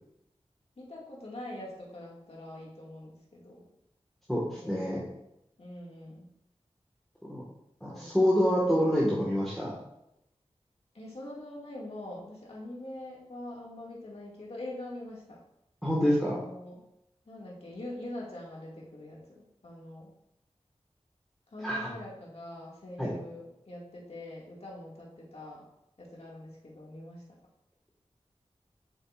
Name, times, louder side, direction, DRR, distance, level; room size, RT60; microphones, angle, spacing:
voice 1, 0.8-3.7 4.6-4.8 5.6-6.3 7.9-8.2 10.9-15.4 16.2-16.7 17.3-20.1 21.5-25.6 26.0-27.2, left 1 dB, 65° left, -4 dB, 2.2 m, -43 dB
voice 2, 4.3-5.0 7.3-7.4 7.8-9.7 15.8-16.4 21.6-21.8 23.0-23.1, equal, ahead, -6 dB, 1.8 m, -26 dB
8.1 x 6.5 x 2.6 m, 0.81 s
wide cardioid pair, 65°, 11 cm